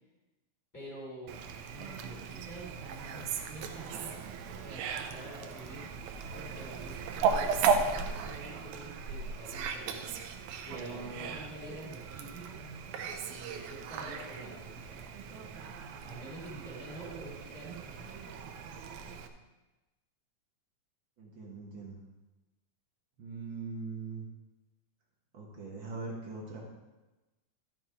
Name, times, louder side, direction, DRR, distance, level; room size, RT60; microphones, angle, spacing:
voice 1, 0.7-5.9 6.3-12.6 13.2-18.3, right 1 dB, 5° left, -4 dB, 3.6 m, -48 dB
Fowl, 1.3-19.3, right 5 dB, 80° right, 2.1 m, -36 dB
voice 2, 21.2-22.0 23.2-24.3 25.3-26.6, right 4 dB, 55° right, -1 dB, 1.5 m, -41 dB
13.0 x 6.1 x 4.8 m, 1.1 s
omnidirectional pair, 3.5 m